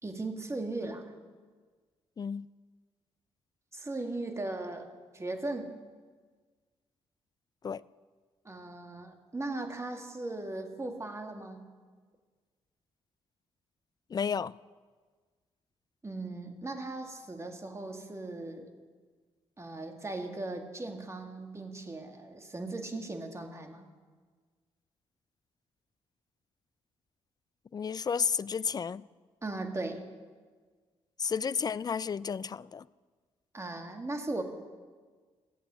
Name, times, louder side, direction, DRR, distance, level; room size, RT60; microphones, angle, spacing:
voice 1, 0.0-1.1 3.7-4.9 5.1-5.7 8.4-11.7 16.0-18.7 19.6-23.9 29.4-30.0 33.5-34.4, right 2 dB, 25° right, 2.0 m, -38 dB
voice 2, 14.1-14.5 27.7-29.0 31.2-32.8, left 6 dB, 35° left, 0.4 m, -32 dB
15.5 x 8.2 x 7.5 m
supercardioid pair, 50°, 12 cm